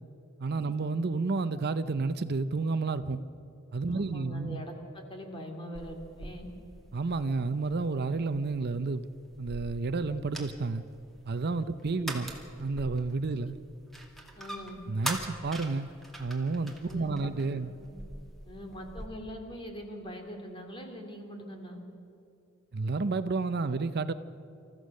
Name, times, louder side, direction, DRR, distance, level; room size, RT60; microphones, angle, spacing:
voice 1, 0.4-3.2 3.7-4.6 6.9-9.1 9.4-10.8 11.2-12.3 12.6-13.6 14.9-15.9 16.2-17.7 22.7-24.1, right 3 dB, 50° right, 0.6 m, -30 dB
voice 2, 3.9-6.5 12.0-12.1 14.4-14.8 16.7-17.9 18.5-21.8, equal, 25° left, 2.7 m, -43 dB
sound 1, 5.7-19.1, right 1 dB, ahead, 2.3 m, -43 dB
28.0 x 14.5 x 6.5 m
head